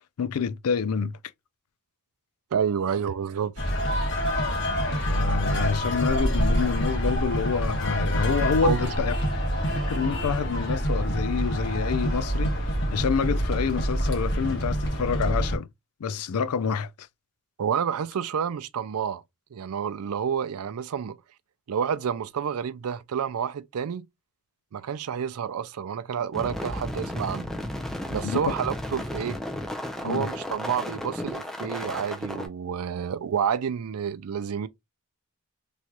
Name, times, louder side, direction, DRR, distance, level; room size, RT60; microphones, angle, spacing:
voice 1, 0.2-1.2 5.1-9.1 9.9-15.7 16.0-17.1 28.2-28.5 30.0-30.3, left 6 dB, 85° left, 0.4 m, -28 dB
voice 2, 2.5-3.7 8.6-8.8 17.6-19.2 19.5-21.2 21.7-24.1 24.7-27.5 28.1-29.4 30.0-34.7, right 7 dB, 80° right, 0.4 m, -29 dB
sound 1, 3.6-15.6, equal, 55° left, 1.3 m, -26 dB
sound 2, 26.3-32.5, left 1 dB, ahead, 0.5 m, -33 dB
3.2 x 2.9 x 2.3 m
head